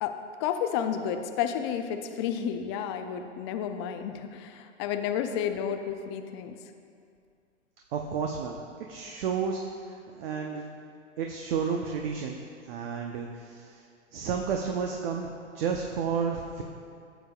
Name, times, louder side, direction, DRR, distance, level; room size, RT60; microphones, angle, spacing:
voice 1, 0.0-6.5, left 8 dB, 25° left, 7 dB, 0.3 m, -31 dB
voice 2, 7.9-10.6 11.2-12.4 12.6-13.8 14.1-16.6, right 6 dB, 50° right, 2 dB, 0.8 m, -32 dB
14.5 x 6.9 x 2.3 m, 2.4 s
hypercardioid pair, 120°, 36 cm